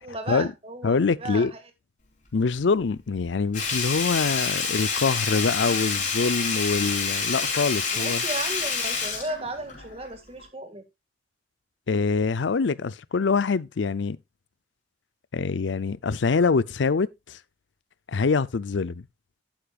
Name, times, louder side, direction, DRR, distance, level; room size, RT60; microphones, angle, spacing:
voice 1, 0.0-1.6 7.9-10.8, right 2 dB, 35° right, 1.9 m, -35 dB
voice 2, 0.8-1.5 2.3-8.2 11.9-14.2 15.3-17.4 18.1-19.0, left 4 dB, 85° left, 0.5 m, -24 dB
Sink (filling or washing), 3.5-10.1 10.4-10.5, left 5 dB, 45° left, 4.4 m, -28 dB
11.5 x 9.0 x 2.4 m
head